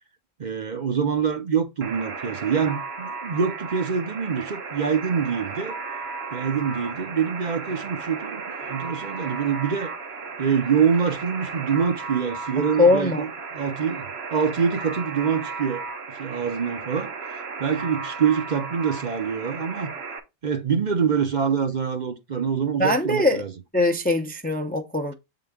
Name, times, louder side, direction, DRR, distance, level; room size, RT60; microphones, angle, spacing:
voice 1, 0.4-5.7 6.3-9.9 10.4-14.0 14.3-19.9 20.4-23.5, right 6 dB, 45° right, 0.8 m, -25 dB
Alarm, 1.8-20.2, right 4 dB, 70° right, 1.2 m, -35 dB
voice 2, 12.8-13.3 22.8-23.4 23.7-25.1, left 2 dB, 10° left, 0.5 m, -21 dB
7.7 x 3.8 x 3.5 m
omnidirectional pair, 1.1 m